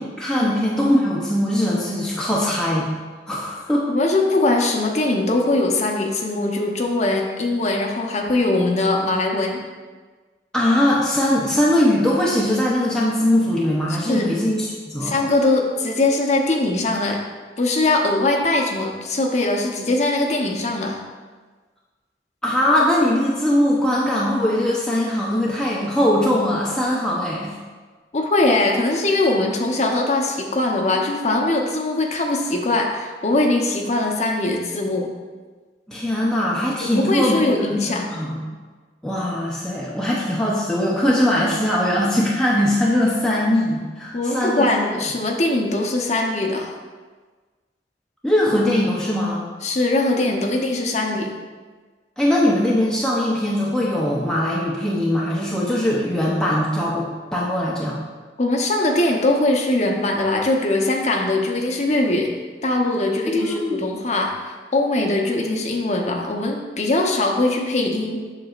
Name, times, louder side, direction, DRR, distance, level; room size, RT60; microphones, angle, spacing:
voice 1, 0.2-2.9 3.3-3.9 10.5-15.1 22.4-27.5 35.9-38.4 39.0-44.7 48.2-49.4 52.2-58.0 63.3-63.8, left 1 dB, 5° left, -6 dB, 0.6 m, -21 dB
voice 2, 3.9-9.6 13.9-14.3 15.0-17.2 17.6-21.0 28.1-35.1 36.8-38.1 44.1-46.7 49.6-51.3 58.4-62.3 62.6-64.3 64.7-68.2, left 2 dB, 40° left, 1 dB, 0.8 m, -21 dB
7.7 x 6.1 x 2.4 m, 1.4 s
head